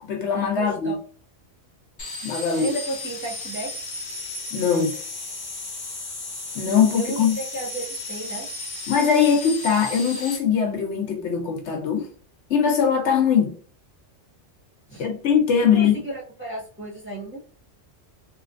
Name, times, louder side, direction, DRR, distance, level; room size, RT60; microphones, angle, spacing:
voice 1, 0.0-1.0 2.2-2.7 4.5-5.0 6.5-7.4 8.9-12.1 12.5-13.5 15.0-16.0, left 7 dB, 70° left, 0.9 m, -21 dB
voice 2, 0.6-1.0 2.6-3.7 6.9-8.5 14.9-15.0 15.7-17.4, right 2 dB, 10° right, 1.2 m, -33 dB
sound 1, 2.0-10.4, left 3 dB, 30° left, 0.5 m, -34 dB
3.2 x 2.6 x 2.5 m
omnidirectional pair, 1.3 m